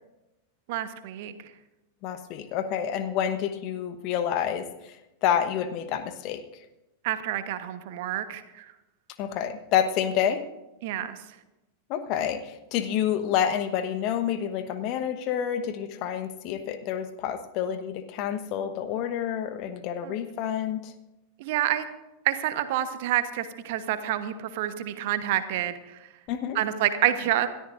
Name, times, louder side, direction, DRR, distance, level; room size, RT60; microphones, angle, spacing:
voice 1, 0.7-1.3 7.0-8.6 10.8-11.2 20.0-20.1 21.4-21.9 22.2-26.0 26.5-27.5, right 12 dB, 50° right, 11 dB, 1.1 m, -28 dB
voice 2, 2.0-6.4 9.2-10.4 11.9-20.9 26.3-26.6, left 9 dB, 40° left, 9 dB, 1.1 m, -28 dB
28.0 x 13.5 x 2.6 m, 0.97 s
figure-of-eight pair, 90°, 0 cm